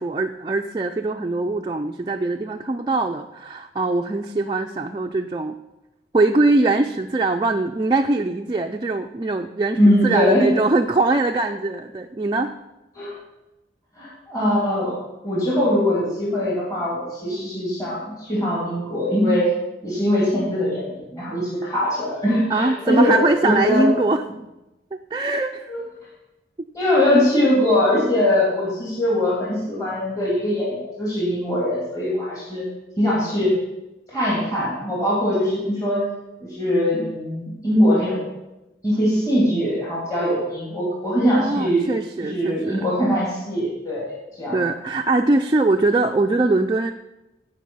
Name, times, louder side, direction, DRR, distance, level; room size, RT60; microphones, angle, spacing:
voice 1, 0.0-5.6 6.1-12.5 22.5-24.2 24.9-25.7 41.4-42.8 44.5-46.9, right 2 dB, 25° right, 3 dB, 0.4 m, -22 dB
voice 2, 9.8-10.5 12.9-13.2 14.0-15.0 15.2-19.5 19.8-23.9 25.7-25.8 26.7-32.6 33.0-33.5 34.1-36.1 36.4-38.3 38.8-41.9 42.2-44.6, left 1 dB, 20° left, -7 dB, 2.8 m, -21 dB
16.0 x 5.3 x 5.6 m, 0.98 s
head